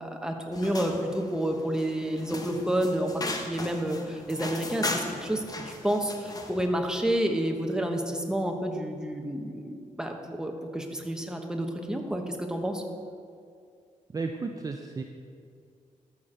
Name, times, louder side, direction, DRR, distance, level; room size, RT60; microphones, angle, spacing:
voice 1, 0.0-4.9 5.2-12.8, right 1 dB, 5° right, 3 dB, 1.1 m, -30 dB
sound 1, 0.5-6.7, left 2 dB, 30° left, 1.0 m, -37 dB
voice 2, 14.1-15.0, right 4 dB, 25° right, 4 dB, 0.5 m, -33 dB
13.5 x 5.9 x 5.1 m, 2.3 s
cardioid pair, 100°, 13 cm